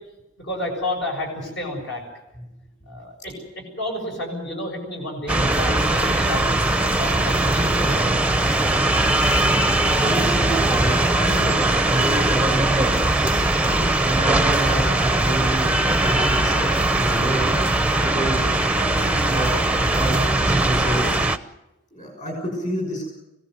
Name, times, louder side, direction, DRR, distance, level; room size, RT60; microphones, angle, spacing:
voice 1, 0.4-2.0 2.9-6.5 7.0-8.2 10.7-11.6 17.1-17.2 17.9-18.1, left 1 dB, 55° left, 1 dB, 7.1 m, -31 dB
sound 1, 5.3-21.4, right 2 dB, 5° right, 0.8 m, -20 dB
voice 2, 10.0-11.6 11.9-12.9 13.6-17.5 18.0-18.5 18.8-21.2 21.9-23.1, right 1 dB, 35° left, 1 dB, 6.3 m, -29 dB
25.5 x 17.0 x 8.0 m, 0.95 s
head